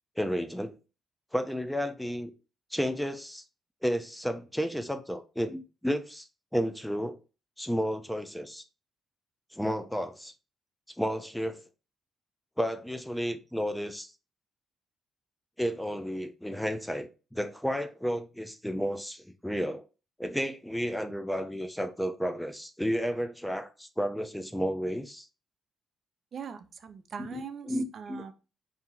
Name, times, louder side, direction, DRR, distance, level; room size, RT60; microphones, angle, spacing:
voice 1, 0.2-0.8 1.3-2.3 2.7-3.4 3.8-6.3 6.5-7.2 7.6-8.6 9.5-10.3 11.0-11.6 12.6-14.1 15.6-19.8 20.2-25.3 27.2-28.2, equal, 5° left, 0.5 m, -32 dB
voice 2, 26.3-28.3, right 7 dB, 50° right, 0.5 m, -41 dB
4.4 x 2.7 x 3.8 m
cardioid pair, 90°, 0 cm